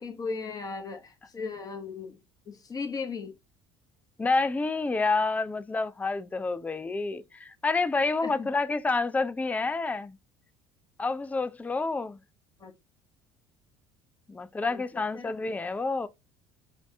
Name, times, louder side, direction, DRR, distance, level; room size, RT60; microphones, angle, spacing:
voice 1, 0.0-2.2 2.5-3.3 8.2-8.5 12.6-12.7 14.7-15.3, left 4 dB, 30° left, 1.4 m, -37 dB
voice 2, 4.2-10.2 11.0-12.2 14.3-16.1, left 3 dB, 10° left, 0.4 m, -28 dB
5.8 x 2.7 x 3.4 m
hypercardioid pair, 70°, 12 cm